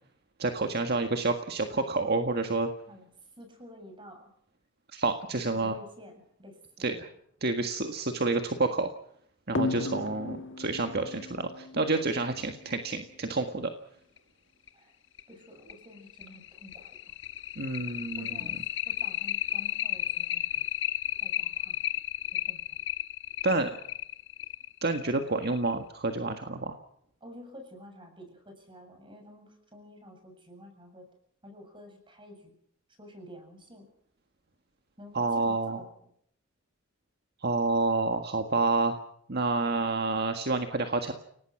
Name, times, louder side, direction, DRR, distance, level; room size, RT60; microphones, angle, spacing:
voice 1, 0.4-2.7 4.9-5.7 6.8-6.9 7.4-8.9 9.5-13.7 17.6-18.3 23.4-23.7 24.8-26.8 35.1-35.8 37.4-39.0 39.3-41.1, right 3 dB, 55° right, 6 dB, 1.7 m, -28 dB
voice 2, 3.4-4.3 5.5-7.1 14.7-14.9 15.3-17.2 17.9-20.6 21.2-21.8 22.3-22.6 27.2-31.1 31.4-32.6 33.0-33.9 35.0-36.1, equal, 25° right, 5 dB, 7.7 m, -50 dB
sound 1, 9.5-12.7 14.2-14.3 14.7-14.8 15.2-15.3 15.7-25.7, left 9 dB, 65° left, 1.4 m, -33 dB
29.5 x 18.5 x 6.0 m, 0.68 s
head